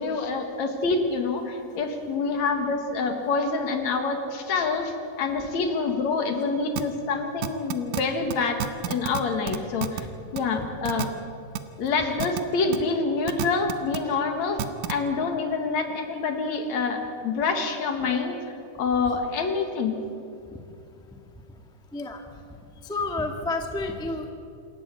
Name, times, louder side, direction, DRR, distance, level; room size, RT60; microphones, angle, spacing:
voice 1, 0.0-8.6 8.9-10.1 10.3-11.1 11.8-14.6 14.9-18.4 18.8-20.0, left 4 dB, 65° left, 5 dB, 2.9 m, -26 dB
sound 1, 6.8-6.9 7.4-8.0 8.3-8.4 8.6-9.2 9.5-10.0 10.4-10.5 10.9-11.1 11.6-11.7 12.2-12.4 12.7-12.8 13.3-14.0 14.6-14.9, right 11 dB, 75° right, 2.4 m, -28 dB
voice 2, 22.8-24.3, left 2 dB, 5° left, 3 dB, 0.8 m, -30 dB
27.0 x 14.0 x 8.2 m, 2.6 s
omnidirectional pair, 3.6 m